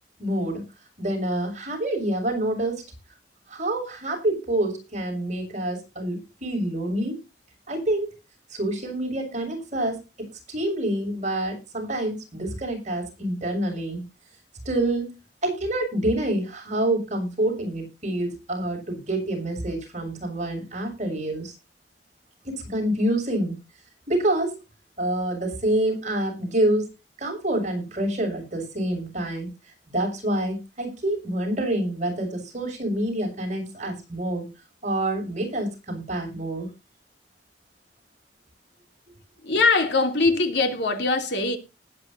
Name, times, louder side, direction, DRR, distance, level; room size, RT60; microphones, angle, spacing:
voice 1, 0.2-0.6 1.0-2.8 3.5-7.2 7.7-8.1 8.5-10.0 10.5-14.1 14.7-15.1 15.4-21.5 22.4-23.6 24.1-24.6 25.0-26.9 27.2-29.5 29.9-34.5 34.8-36.7, right 1 dB, 45° right, 7.0 m, -27 dB
voice 2, 39.4-41.6, left 3 dB, 75° left, 2.9 m, -22 dB
19.5 x 9.7 x 2.8 m
head